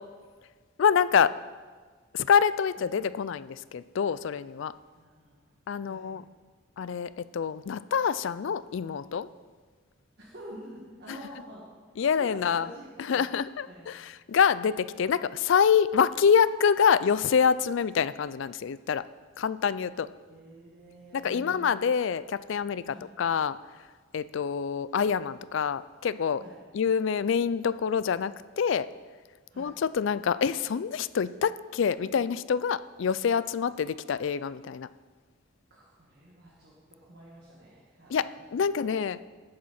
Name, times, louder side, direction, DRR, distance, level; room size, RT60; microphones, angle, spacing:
voice 1, 0.8-1.3 2.1-4.7 5.7-6.2 6.8-9.3 12.0-12.7 13.1-19.0 19.4-20.1 21.1-23.6 24.1-26.4 26.7-28.9 29.6-34.9 38.1-39.2, left 7 dB, 60° left, 16 dB, 0.4 m, -26 dB
voice 2, 5.0-5.6 5.8-6.2 10.2-11.6 12.2-13.9 20.3-21.8 22.8-23.1 26.4-26.6 29.5-29.7 35.7-38.5 38.8-38.9, right 1 dB, 50° right, -5 dB, 2.0 m, -48 dB
18.0 x 7.6 x 4.3 m, 1.5 s
head